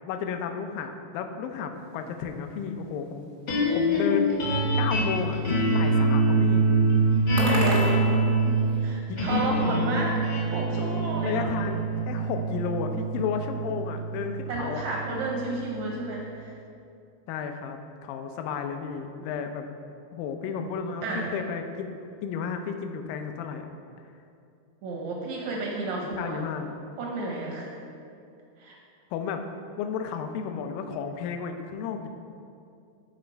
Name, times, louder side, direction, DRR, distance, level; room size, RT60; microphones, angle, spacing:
voice 1, 0.1-3.3 3.7-4.5 4.8-6.7 9.1-9.8 11.2-14.8 17.3-19.7 20.1-23.7 26.0-26.8 29.1-29.4 29.8-32.1, left 6 dB, 80° left, 6 dB, 2.1 m, -33 dB
sound 1, 1.7-9.0, right 1 dB, 65° right, 0.9 m, -39 dB
sound 2, 3.5-15.8, right 2 dB, 55° left, 1.2 m, -25 dB
voice 2, 7.4-8.2 8.8-11.5 14.5-16.5 21.0-21.3 24.8-26.4 27.0-27.7 28.6-28.8, right 2 dB, 80° right, -2 dB, 1.6 m, -32 dB
11.5 x 4.2 x 4.4 m, 2.5 s
omnidirectional pair, 4.4 m